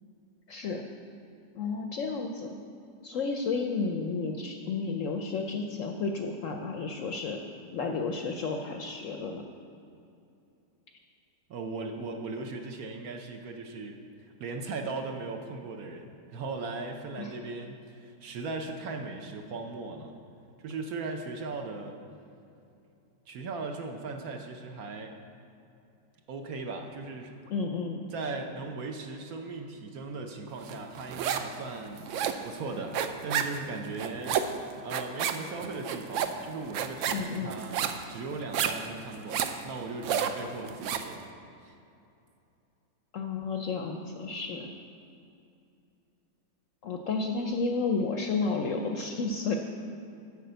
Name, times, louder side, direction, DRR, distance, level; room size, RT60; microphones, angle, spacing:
voice 1, 0.5-0.8 1.5-2.6 3.0-7.4 7.7-9.4 17.2-17.3 27.5-28.1 37.1-37.5 43.1-44.7 46.8-49.5, left 4 dB, 65° left, 3 dB, 0.8 m, -32 dB
voice 2, 11.5-20.1 20.6-22.0 23.3-25.2 26.3-27.3 28.1-32.1 32.4-34.5 34.8-37.8 38.1-41.3 41.6-41.7, right 3 dB, 65° right, 4 dB, 1.1 m, -38 dB
sound 1, 30.7-31.6 31.8-41.1, right 8 dB, 85° right, 0.6 m, -31 dB
8.4 x 5.8 x 7.8 m, 2.7 s
omnidirectional pair, 1.8 m